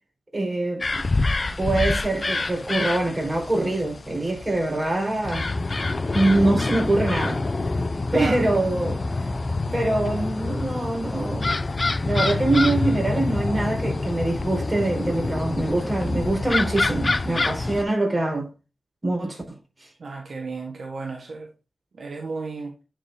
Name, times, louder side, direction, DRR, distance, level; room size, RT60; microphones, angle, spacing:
voice 1, 0.3-0.8 1.6-5.5 6.1-7.4 8.1-9.0 9.7-11.5 11.8-18.5 19.0-19.9, right 2 dB, 30° right, 4.6 m, -24 dB
sound 1, 0.8-17.8, left 3 dB, 45° left, 0.6 m, -26 dB
voice 2, 8.1-8.4 20.0-21.5 22.0-22.7, right 3 dB, 70° right, 1.2 m, -32 dB
9.9 x 4.8 x 2.7 m
cardioid pair, 55°, 0 cm